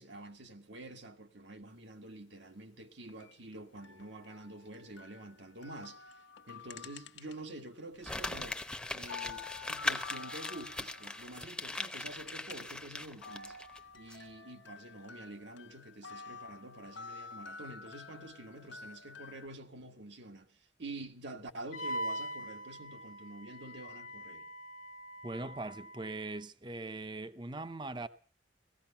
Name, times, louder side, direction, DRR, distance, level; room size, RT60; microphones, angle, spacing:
voice 1, 0.0-8.6 8.9-13.6 13.9-24.5, right 2 dB, 75° right, 1.8 m, -48 dB
sound 1, 3.1-7.6 7.9-12.8 13.1-19.5, left 5 dB, 80° left, 1.0 m, -50 dB
Crumpling crinkling, 8.0-13.8 14.1-14.2, left 2 dB, 5° left, 0.8 m, -39 dB
Wind instrument woodwind instrument, 21.7-26.4, right 1 dB, 45° left, 0.8 m, -42 dB
voice 2, 25.2-28.1, right 2 dB, 25° right, 0.7 m, -40 dB
16.5 x 14.5 x 5.7 m
head